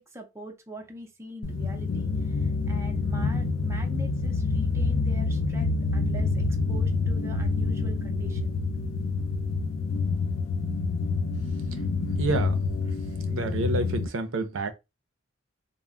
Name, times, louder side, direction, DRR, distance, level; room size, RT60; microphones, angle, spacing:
voice 1, 0.0-8.6, right 1 dB, 15° right, 0.5 m, -42 dB
sound 1, 1.4-14.1, left 3 dB, 75° left, 0.4 m, -27 dB
voice 2, 12.2-12.6 13.3-14.7, right 3 dB, 70° right, 0.5 m, -28 dB
2.2 x 2.0 x 3.5 m
head